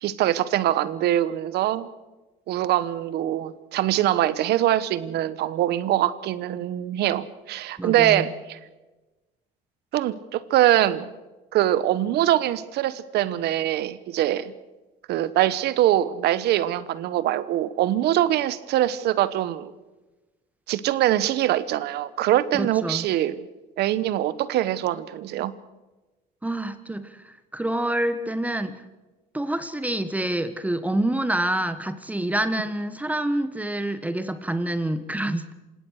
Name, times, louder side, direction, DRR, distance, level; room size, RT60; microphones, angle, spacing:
voice 1, 0.0-1.9 2.5-8.6 9.9-11.1 11.5-14.5 15.1-19.7 20.7-23.5 23.8-25.5, right 13 dB, 75° right, 16 dB, 1.2 m, -23 dB
voice 2, 7.8-8.3 22.5-23.1 26.4-28.8 29.3-35.5, right 1 dB, 10° right, 11 dB, 1.4 m, -27 dB
27.5 x 17.5 x 6.5 m, 1.1 s
cardioid pair, 110°, 17 cm